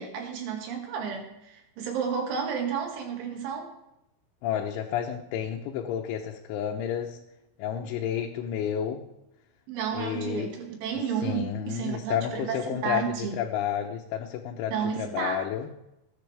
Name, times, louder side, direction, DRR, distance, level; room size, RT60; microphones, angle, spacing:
voice 1, 0.0-3.7 9.7-13.4 14.7-15.4, right 7 dB, 85° right, 1 dB, 4.6 m, -32 dB
voice 2, 4.4-7.2 7.6-9.0 9.9-10.5 11.2-15.7, left 9 dB, 85° left, 1 dB, 3.4 m, -31 dB
20.0 x 10.0 x 3.4 m, 0.88 s
omnidirectional pair, 5.3 m